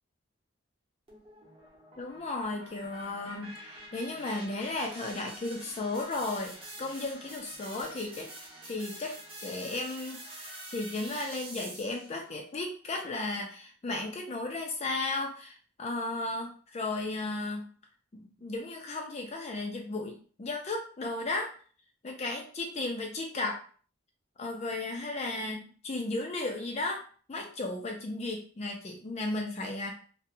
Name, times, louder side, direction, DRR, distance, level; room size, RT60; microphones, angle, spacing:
sound 1, 1.1-12.2, right 1 dB, 25° right, 0.7 m, -46 dB
voice 1, 2.0-8.3 8.6-17.7 18.1-21.5 22.0-23.6 24.4-27.0 27.3-29.9, left 2 dB, 30° left, 2 dB, 0.4 m, -35 dB
2.7 x 2.1 x 2.6 m, 0.42 s
head